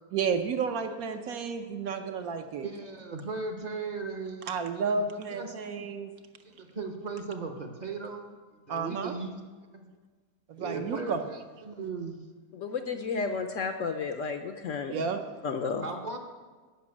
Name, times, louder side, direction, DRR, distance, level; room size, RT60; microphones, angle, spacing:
voice 1, 0.1-2.7 4.5-6.1 8.7-9.2 10.5-11.2 14.9-15.2, right 5 dB, 65° right, 6 dB, 1.1 m, -31 dB
voice 2, 2.6-4.6 4.9-5.0 5.3-5.5 6.4-9.4 9.7-9.9 10.6-11.4 11.6-12.2 12.9-13.2 15.8-16.2, right 4 dB, 35° right, 4 dB, 0.7 m, -37 dB
voice 3, 12.5-14.9 15.4-15.8, left 5 dB, 65° left, 7 dB, 0.9 m, -32 dB
10.5 x 5.6 x 8.6 m, 1.4 s
omnidirectional pair, 1.8 m